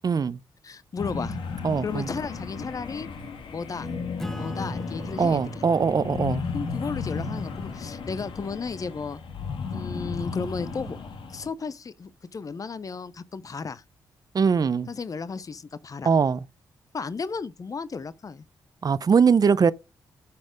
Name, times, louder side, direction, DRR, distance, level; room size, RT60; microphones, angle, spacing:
voice 1, 0.0-0.4 1.6-2.1 5.2-6.4 14.3-14.9 16.1-16.4 18.8-19.7, right 6 dB, 45° right, 0.6 m, -21 dB
voice 2, 0.6-1.4 1.8-3.1 3.5-3.9 4.3-5.6 6.5-9.2 9.7-11.0 11.3-13.8 14.8-16.1 16.9-18.4, left 5 dB, 40° left, 0.7 m, -34 dB
sound 1, 1.0-11.5, left 5 dB, 70° left, 1.6 m, -34 dB
Acoustic guitar / Strum, 4.2-9.2, equal, 5° left, 1.0 m, -41 dB
9.6 x 4.3 x 5.1 m
supercardioid pair, 50°, 9 cm